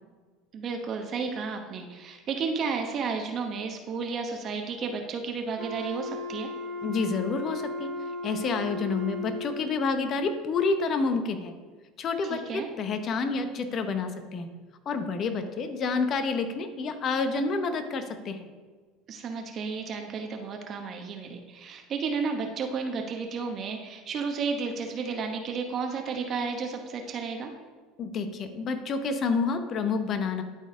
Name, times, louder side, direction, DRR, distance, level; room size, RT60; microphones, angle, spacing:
voice 1, 0.5-6.5 12.3-12.7 19.1-27.5, right 5 dB, 45° right, 4 dB, 1.0 m, -32 dB
Wind instrument woodwind instrument, 5.6-9.9, left 2 dB, 65° right, 1.8 m, -36 dB
voice 2, 6.8-7.9 8.2-11.5 12.0-14.5 14.9-18.5 28.0-30.4, left 4 dB, 45° left, 8 dB, 0.9 m, -29 dB
12.0 x 4.1 x 3.8 m, 1.4 s
hypercardioid pair, 85°, 0 cm